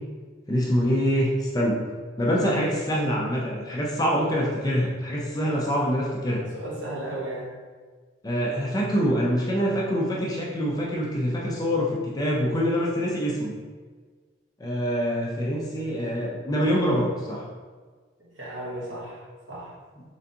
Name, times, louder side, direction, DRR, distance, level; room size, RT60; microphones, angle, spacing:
voice 1, 0.5-1.8 2.2-6.4 8.2-13.5 14.6-17.4, equal, 20° left, -3 dB, 0.4 m, -25 dB
voice 2, 6.5-7.5 18.4-19.7, right 1 dB, 70° right, -6 dB, 1.2 m, -35 dB
4.0 x 3.3 x 2.6 m, 1.5 s
head